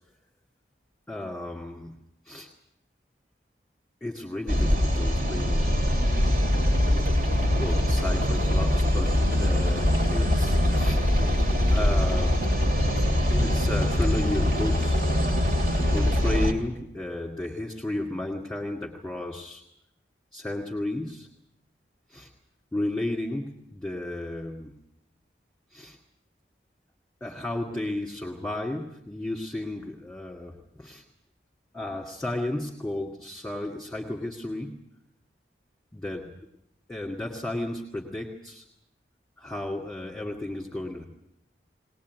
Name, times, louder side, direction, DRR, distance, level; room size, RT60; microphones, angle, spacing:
voice 1, 1.1-1.9 2.3-2.5 4.0-5.9 7.6-11.0 11.7-12.5 13.3-15.0 15.9-19.6 20.3-21.3 22.1-22.3 22.7-24.8 25.7-26.0 27.2-31.0 31.7-34.8 35.9-36.4 36.9-38.6 39.4-41.0, left 1 dB, 5° left, -1 dB, 2.1 m, -33 dB
sound 1, 4.5-16.5, left 1 dB, 50° right, 2.9 m, -23 dB
21.0 x 19.5 x 9.4 m, 0.79 s
head